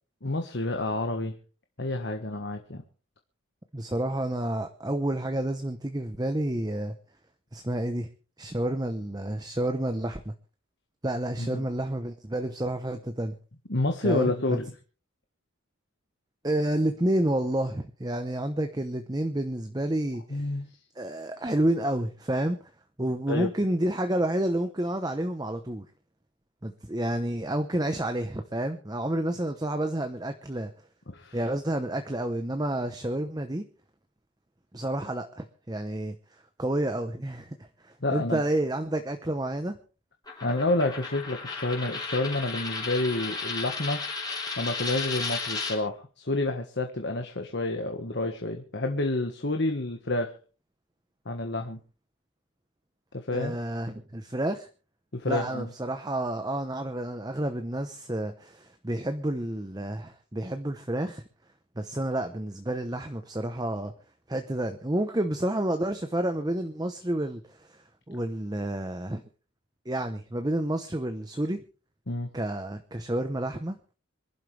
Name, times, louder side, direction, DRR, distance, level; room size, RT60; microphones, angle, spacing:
voice 1, 0.2-1.4 1.8-2.8 11.4-11.6 13.7-14.7 20.3-20.7 23.3-23.5 31.1-31.4 38.0-38.4 40.4-44.0 44.6-50.3 51.2-51.8 53.1-53.5 55.1-55.7 72.1-72.3, left 2 dB, 55° left, 4 dB, 1.5 m, -29 dB
voice 2, 3.7-6.9 7.5-8.1 8.4-10.3 11.0-13.3 14.0-14.6 16.4-20.5 21.0-22.6 23.0-25.9 26.6-30.7 31.3-33.6 34.7-36.1 36.6-37.6 37.8-39.8 53.3-54.7 55.2-61.2 61.8-63.9 64.3-67.8 68.1-69.2 69.9-71.6 72.3-73.8, right 1 dB, 20° right, 7 dB, 0.9 m, -29 dB
Coin (dropping), 40.3-45.8, left 4 dB, 20° left, 3.6 m, -34 dB
26.0 x 11.5 x 3.4 m, 0.37 s
head